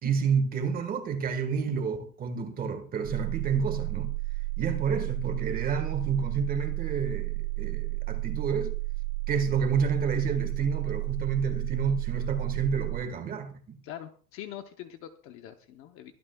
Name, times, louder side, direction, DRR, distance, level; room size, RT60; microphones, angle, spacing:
voice 1, 0.0-4.1 4.6-8.7 9.3-13.8, right 6 dB, 20° right, 1.5 m, -29 dB
sound 1, 3.0-13.1, right 25 dB, 50° right, 3.5 m, -32 dB
voice 2, 13.8-16.1, left 11 dB, 30° left, 0.8 m, -43 dB
23.5 x 12.5 x 2.3 m
supercardioid pair, 180°, 45 cm